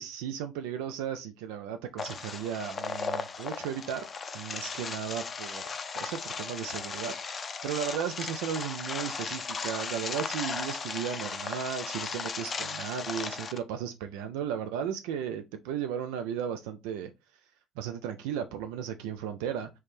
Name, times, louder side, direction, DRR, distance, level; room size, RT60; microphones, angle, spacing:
voice 1, 0.0-4.1 4.3-5.6 5.9-17.1 17.8-19.7, right 8 dB, 70° right, 0.3 m, -35 dB
sound 1, 2.0-13.6, left 5 dB, 35° left, 0.4 m, -36 dB
3.1 x 2.9 x 3.3 m
figure-of-eight pair, 55°, 0 cm